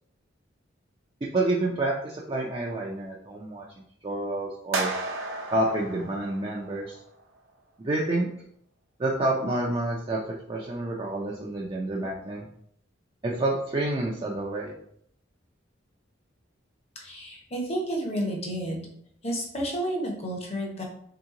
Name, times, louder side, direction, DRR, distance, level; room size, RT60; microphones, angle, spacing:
voice 1, 1.3-3.6 4.0-4.9 5.5-7.0 7.8-8.3 9.0-12.5 13.2-14.7, right 2 dB, 25° right, -3 dB, 0.4 m, -28 dB
sound 1, 4.7-7.0, right 3 dB, 80° right, 0.7 m, -33 dB
voice 2, 16.9-18.9 19.2-20.8, right 1 dB, 30° left, 1 dB, 0.8 m, -31 dB
3.5 x 2.9 x 3.6 m, 0.66 s
head